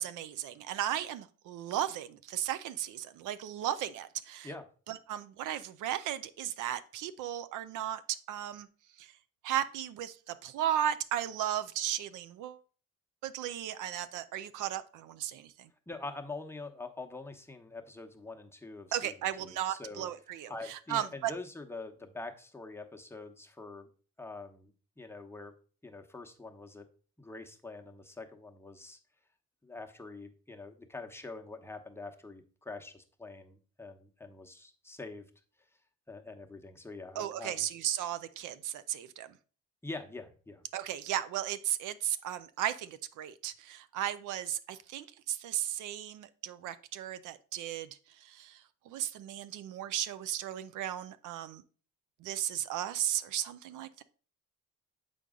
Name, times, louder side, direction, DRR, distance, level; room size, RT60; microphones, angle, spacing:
voice 1, 0.0-4.5 4.9-8.7 9.0-9.1 9.4-12.6 13.2-15.7 18.9-21.3 37.2-39.3 40.7-51.6 52.2-54.0, right 11 dB, 85° right, 13 dB, 0.5 m, -35 dB
voice 2, 15.9-19.1 19.4-20.1 20.5-23.9 24.2-24.7 25.0-25.5 25.8-26.8 27.2-29.0 29.6-35.3 36.1-37.7 39.8-40.6, left 3 dB, 10° left, 3 dB, 0.9 m, -45 dB
6.8 x 5.1 x 3.6 m, 0.39 s
cardioid pair, 90°, 30 cm